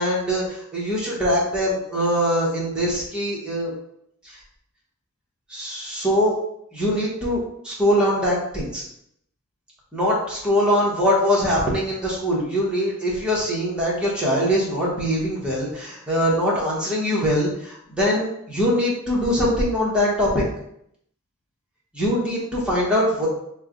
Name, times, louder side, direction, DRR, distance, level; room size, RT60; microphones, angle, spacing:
voice 1, 0.0-3.7 4.2-4.4 5.5-6.4 6.7-8.8 9.9-20.4 21.9-23.3, equal, 5° right, -6 dB, 1.0 m, -22 dB
3.2 x 2.2 x 3.7 m, 0.72 s
head